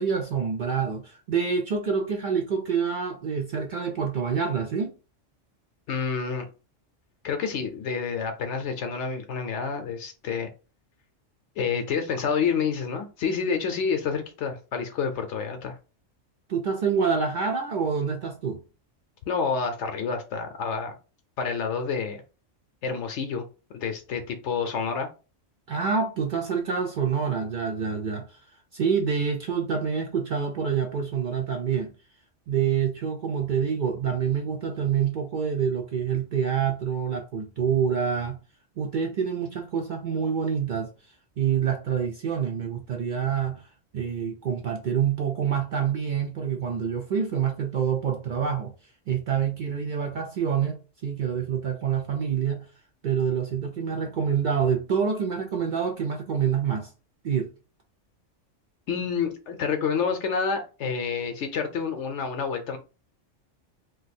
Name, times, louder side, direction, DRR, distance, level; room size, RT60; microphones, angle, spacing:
voice 1, 0.0-4.9 16.5-18.6 25.7-28.4 28.7-31.9 32.5-38.4 38.8-40.9 41.4-43.7 43.9-48.7 49.1-52.7 53.0-56.9 57.2-57.5, right 7 dB, 60° right, 0.5 m, -27 dB
voice 2, 5.9-6.5 7.2-10.5 11.6-15.8 19.3-20.9 21.4-22.2 22.8-23.4 23.7-25.1 58.9-62.8, left 6 dB, 70° left, 0.8 m, -28 dB
2.6 x 2.2 x 4.0 m
omnidirectional pair, 1.3 m